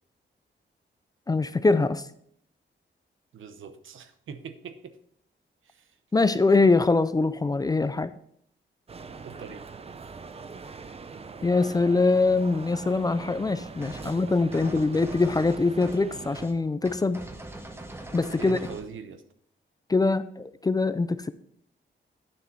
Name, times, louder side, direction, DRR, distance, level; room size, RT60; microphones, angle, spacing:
voice 1, 1.3-2.1 6.1-8.1 11.4-17.2 18.1-18.6 19.9-21.3, left 3 dB, 20° left, 0.4 m, -23 dB
voice 2, 3.3-5.0 5.6-5.9 9.2-9.6 13.8-14.8 18.4-19.2, right 6 dB, 80° right, 0.9 m, -42 dB
sound 1, 8.9-16.5, right 4 dB, 30° right, 0.5 m, -42 dB
sound 2, 13.8-14.2 14.5-16.1 16.3-16.5 16.8-18.9, right 1 dB, 10° right, 0.9 m, -42 dB
9.7 x 6.8 x 4.5 m
wide cardioid pair, 135°, 20 cm